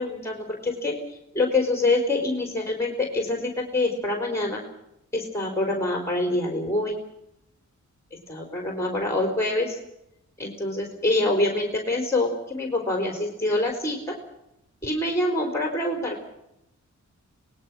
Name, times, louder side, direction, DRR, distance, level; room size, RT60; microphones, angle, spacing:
voice 1, 0.0-4.6 5.1-6.9 8.1-9.8 10.4-14.2 14.8-16.2, left 2 dB, 10° left, 1 dB, 4.1 m, -26 dB
27.5 x 19.0 x 6.2 m, 0.85 s
wide cardioid pair, 100°, 30 cm